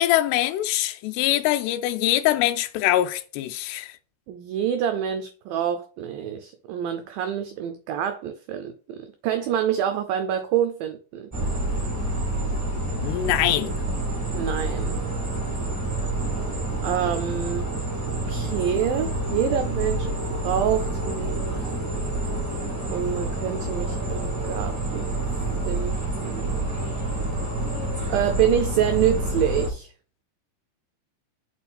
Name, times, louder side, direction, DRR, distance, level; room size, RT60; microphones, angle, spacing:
voice 1, 0.0-3.9 13.0-13.7, left 14 dB, 90° left, 2.6 m, -23 dB
voice 2, 4.3-11.3 14.3-15.0 16.8-17.7 18.1-20.1 20.4-21.7 22.9-25.2 25.7-26.7 28.1-29.9, right 9 dB, 80° right, 2.1 m, -27 dB
sound 1, 11.3-29.7, right 2 dB, 10° right, 0.7 m, -28 dB
7.2 x 4.4 x 4.2 m
omnidirectional pair, 4.7 m